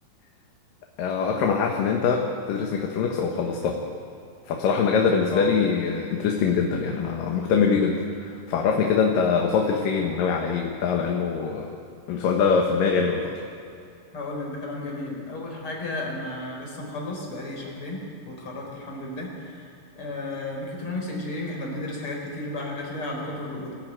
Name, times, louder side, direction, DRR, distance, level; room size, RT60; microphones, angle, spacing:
voice 1, 1.0-3.8 4.5-11.7 12.1-13.3, left 5 dB, 85° left, 1 dB, 3.0 m, -23 dB
voice 2, 14.1-23.7, left 2 dB, 40° left, -1 dB, 5.4 m, -33 dB
24.0 x 14.5 x 9.1 m, 2.5 s
omnidirectional pair, 3.8 m